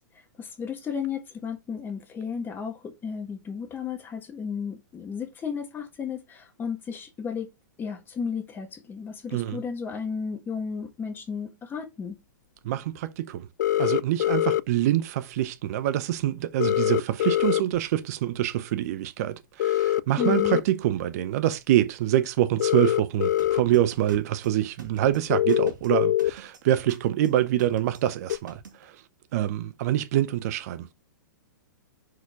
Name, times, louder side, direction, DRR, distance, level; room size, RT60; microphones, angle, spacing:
voice 1, 0.0-7.5 7.8-12.2 20.2-20.6, left 6 dB, 20° left, 1.3 m, -34 dB
voice 2, 9.3-9.6 12.6-13.5 13.8-29.0 29.3-30.9, right 13 dB, 50° right, 0.6 m, -25 dB
sound 1, 13.6-14.6 16.6-17.6 19.6-20.6 22.6-23.6 24.1-24.2 25.3-26.3 28.3-28.4, left 13 dB, 65° left, 0.4 m, -23 dB
sound 2, 23.4-28.8, right 5 dB, 75° right, 2.0 m, -47 dB
6.0 x 4.7 x 3.6 m
hypercardioid pair, 115°, 10 cm